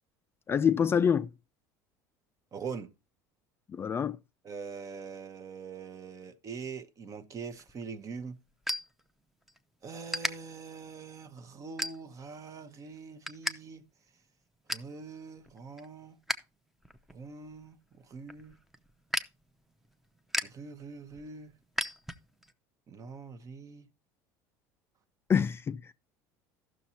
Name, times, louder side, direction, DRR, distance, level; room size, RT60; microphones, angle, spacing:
voice 1, 0.5-1.3 3.7-4.2 25.3-25.8, left 7 dB, 25° left, 0.4 m, -26 dB
voice 2, 2.5-2.9 4.4-8.4 9.8-13.8 14.7-16.2 17.1-17.8 18.1-18.6 20.4-21.5 22.9-23.8, right 5 dB, 35° right, 0.9 m, -43 dB
sound 1, 7.5-9.6 10.1-10.3 10.9-11.1 11.8-12.3 12.7-13.6 13.8-13.9 14.3-14.9 15.4-16.5 16.8-22.5, equal, ahead, 0.7 m, -37 dB
14.5 x 6.2 x 2.8 m
supercardioid pair, 100°, 9 cm